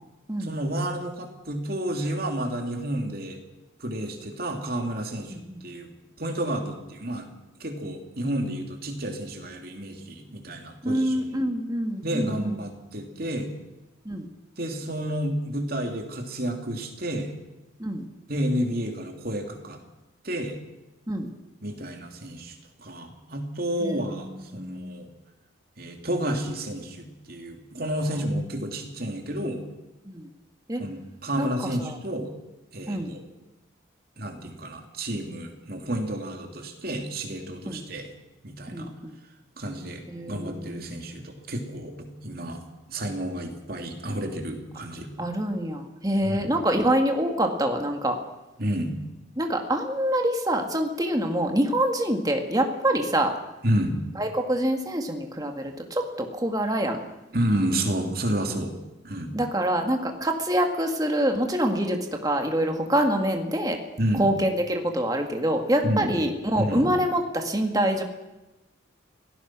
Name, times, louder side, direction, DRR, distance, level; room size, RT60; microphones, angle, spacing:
voice 1, 0.4-3.4 3.8-5.9 6.2-7.3 7.6-11.1 12.0-13.5 14.6-17.3 18.3-19.8 20.2-20.6 21.6-25.1 25.8-29.6 30.8-32.3 32.7-33.2 34.2-38.1 38.4-38.9 39.6-42.6 42.9-45.1 46.2-46.5 48.6-48.9 53.6-54.0 57.3-58.7 59.0-59.3 64.0-64.3 65.8-66.1 66.6-66.9, right 1 dB, 45° right, 3 dB, 3.1 m, -30 dB
voice 2, 5.3-5.6 10.8-12.5 14.1-14.3 17.8-18.1 21.1-21.3 23.8-25.0 28.1-28.3 30.0-30.3 30.7-30.8 31.4-31.5 31.8-32.0 32.9-33.2 37.7-37.8 38.7-39.1 40.1-40.9 45.2-48.2 49.4-53.3 54.2-57.0 59.3-63.8 64.2-68.0, right 1 dB, 20° right, 3 dB, 2.1 m, -26 dB
26.0 x 17.5 x 6.2 m, 1.0 s
head